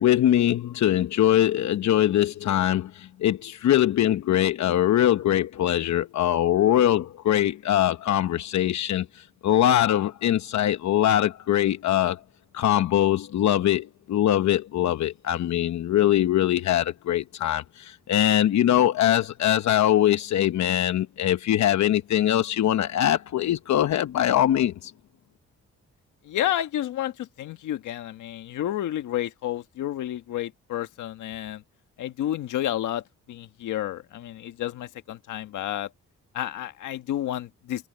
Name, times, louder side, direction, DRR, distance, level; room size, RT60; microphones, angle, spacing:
voice 1, 0.0-12.2 12.5-24.9, left 12 dB, 70° left, 0.9 m, -22 dB
voice 2, 26.2-31.6 32.0-35.9 36.3-37.9, left 12 dB, 85° left, 1.6 m, -30 dB
cardioid pair, 85°, 30 cm